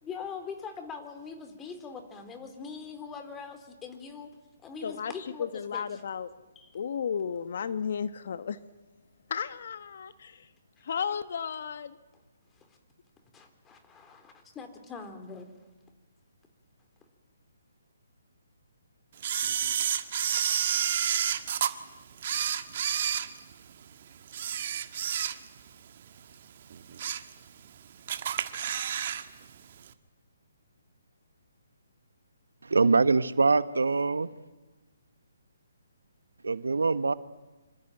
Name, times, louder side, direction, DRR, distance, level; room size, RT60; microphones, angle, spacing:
voice 1, 0.0-4.3 4.6-5.5 5.7-5.8 6.6-6.7 13.3-15.5, left 5 dB, 15° left, 3.7 m, -42 dB
voice 2, 4.8-6.3 6.7-8.6 9.3-10.5 10.8-12.0, left 7 dB, 55° left, 1.3 m, -34 dB
Camera, 19.2-21.7 22.2-23.8 24.3-25.7 26.0-26.2 26.7-27.3 27.7-27.8 28.1-29.2 29.5-29.6, right 9 dB, 45° right, 1.7 m, -29 dB
voice 3, 32.7-34.3 36.4-37.1, right 4 dB, 80° right, 1.2 m, -23 dB
25.5 x 25.5 x 9.1 m
figure-of-eight pair, 140°, 0 cm